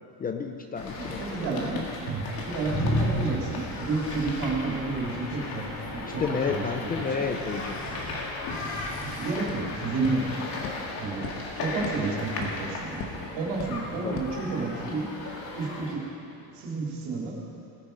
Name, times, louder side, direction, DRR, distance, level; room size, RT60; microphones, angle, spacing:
voice 1, 0.2-1.9 6.1-7.8 14.0-14.3, left 5 dB, 20° left, 5 dB, 0.5 m, -31 dB
sound 1, 0.8-15.9, left 2 dB, 55° left, 2.3 m, -36 dB
voice 2, 1.0-1.8 2.1-6.2 6.5-7.2 9.0-10.5 11.0-11.3 11.6-13.0 13.3-15.1 15.5-16.0 16.4-17.4, right 3 dB, 75° right, -3 dB, 3.5 m, -31 dB
sound 2, 2.6-4.5 7.3-9.4, left 1 dB, 40° left, 1.6 m, -32 dB
sound 3, 9.0-15.1, left 4 dB, 75° left, 1.7 m, -42 dB
18.5 x 9.3 x 5.4 m, 2.7 s
cardioid pair, 175°, 43 cm